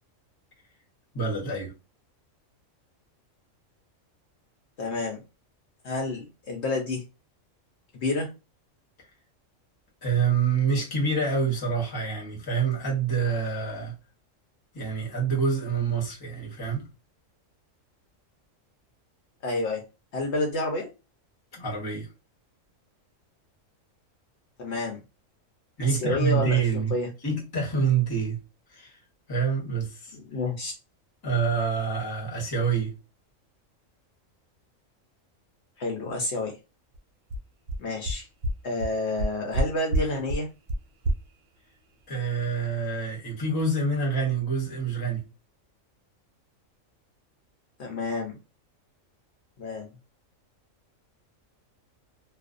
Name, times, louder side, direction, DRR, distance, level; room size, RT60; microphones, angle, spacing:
voice 1, 1.1-1.7 10.0-14.0 14.7-16.8 21.5-22.1 25.8-26.9 27.2-28.4 28.7-28.9 29.3-30.2 31.2-32.9 42.1-45.2, right 5 dB, 20° left, 0.7 m, -27 dB
voice 2, 4.8-5.2 5.8-7.0 7.9-8.3 19.4-19.8 20.1-20.9 24.6-25.0 25.8-27.1 30.1-30.7 35.8-36.5 37.8-38.3 38.6-40.5 47.8-48.4 49.6-49.9, left 2 dB, 65° left, 0.8 m, -29 dB
sound 1, 36.9-37.0 37.3-37.4 37.7-37.8 38.1-38.2 38.4-38.5 38.8-38.9 39.2-39.6 39.9-40.0 40.3-40.4 40.7-40.8 41.0-41.1, right 2 dB, 80° right, 0.9 m, -25 dB
2.4 x 2.0 x 2.4 m
omnidirectional pair, 1.4 m